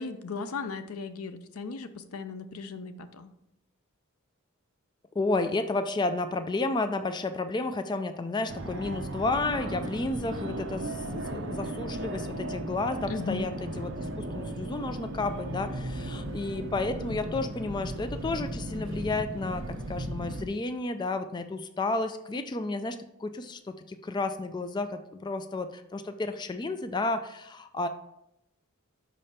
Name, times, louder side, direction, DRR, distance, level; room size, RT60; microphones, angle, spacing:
voice 1, 0.0-3.3 13.1-13.5, left 4 dB, 85° left, 11 dB, 0.5 m, -37 dB
voice 2, 5.2-19.6 19.9-23.6 23.9-27.9, left 3 dB, 20° left, 9 dB, 0.3 m, -32 dB
Fixed-wing aircraft airplane, 8.5-20.5, right 1 dB, 60° right, 0.7 m, -36 dB
5.5 x 5.0 x 4.2 m, 0.82 s
head